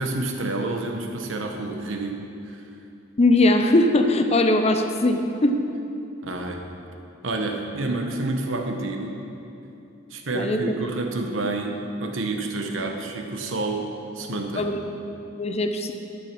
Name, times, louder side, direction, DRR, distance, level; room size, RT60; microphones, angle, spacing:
voice 1, 0.0-2.2 2.5-2.6 6.2-6.7 7.2-9.2 10.1-13.9 14.1-14.8, right 2 dB, 75° right, 3 dB, 1.1 m, -29 dB
voice 2, 3.2-5.6 10.3-10.6 14.6-14.8 15.4-15.9, left 2 dB, 30° left, 6 dB, 0.6 m, -20 dB
12.0 x 6.5 x 5.9 m, 2.8 s
head